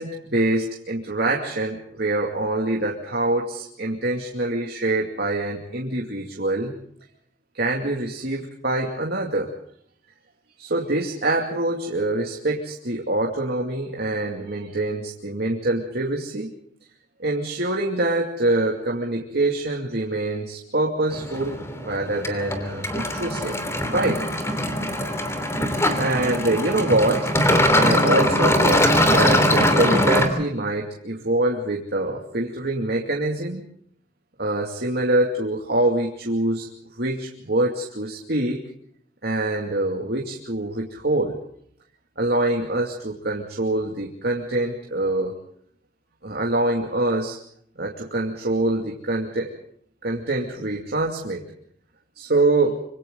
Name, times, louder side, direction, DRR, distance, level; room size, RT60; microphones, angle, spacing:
voice 1, 0.0-6.7 7.5-9.5 10.6-16.5 17.2-21.6 21.8-23.5 23.9-24.2 26.0-27.3 27.7-33.6 34.4-36.7 37.0-38.6 39.2-41.4 42.2-45.3 46.2-47.4 47.8-49.5 50.0-51.4 52.2-52.9, right 2 dB, 65° right, -1 dB, 2.5 m, -25 dB
sound 1, 21.1-30.3, left 1 dB, 15° left, 3.0 m, -21 dB
26.0 x 26.0 x 3.9 m, 0.67 s
head